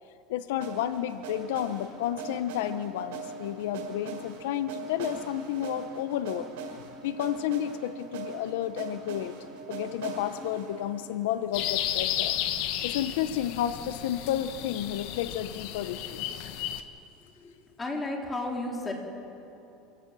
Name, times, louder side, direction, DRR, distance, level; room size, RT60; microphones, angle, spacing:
voice 1, 0.3-6.5 7.0-9.3 9.7-12.3 12.8-16.3, left 11 dB, 85° left, 12 dB, 0.8 m, -31 dB
sound 1, 0.6-12.5, right 4 dB, 85° right, 5.7 m, -41 dB
sound 2, 11.5-16.8, left 12 dB, 65° left, 1.4 m, -33 dB
voice 2, 17.8-18.9, left 2 dB, 15° left, 0 dB, 4.0 m, -33 dB
28.0 x 17.0 x 7.7 m, 3.0 s
supercardioid pair, 135°, 0 cm